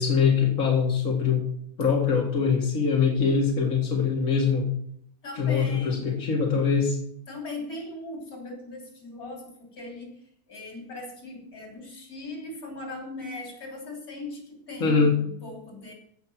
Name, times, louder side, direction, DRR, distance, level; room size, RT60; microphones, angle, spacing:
voice 1, 0.0-1.5 1.8-4.7 5.4-7.0 14.8-15.2, left 5 dB, 65° left, -1 dB, 2.3 m, -23 dB
voice 2, 5.2-6.1 7.3-10.2 10.5-15.9, left 2 dB, 90° left, 0 dB, 3.6 m, -39 dB
15.5 x 5.3 x 6.1 m, 0.67 s
omnidirectional pair, 1.5 m